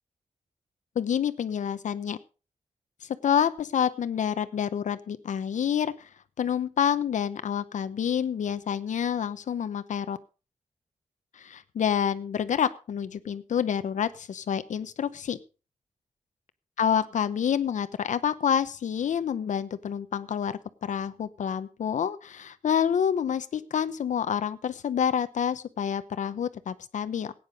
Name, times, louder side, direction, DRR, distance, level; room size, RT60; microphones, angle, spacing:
voice 1, 1.0-2.2 3.0-6.1 6.4-10.2 11.3-15.4 16.8-27.3, left 8 dB, 75° left, 12 dB, 0.8 m, -28 dB
16.5 x 9.5 x 5.2 m, 0.35 s
wide cardioid pair, 175°, 13 cm